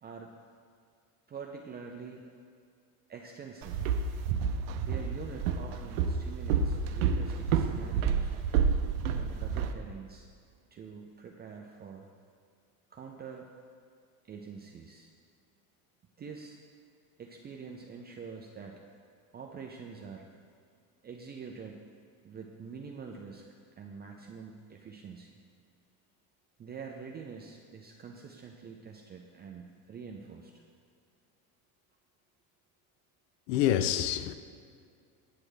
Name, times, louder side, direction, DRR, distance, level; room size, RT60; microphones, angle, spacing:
voice 1, 0.0-0.3 1.3-2.3 3.1-3.8 4.5-8.3 9.2-10.3 10.7-12.1 12.9-13.5 14.3-15.1 16.2-16.6 17.2-18.8 19.3-20.3 21.0-21.9 22.2-23.4 23.8-25.4 26.6-30.5, right 5 dB, 25° right, 0.4 m, -45 dB
Walk footsteps, 3.6-9.7, right 6 dB, 80° right, 0.6 m, -29 dB
voice 2, 33.5-34.3, left 11 dB, 70° left, 0.5 m, -27 dB
8.6 x 6.1 x 3.4 m
supercardioid pair, 100°, 41 cm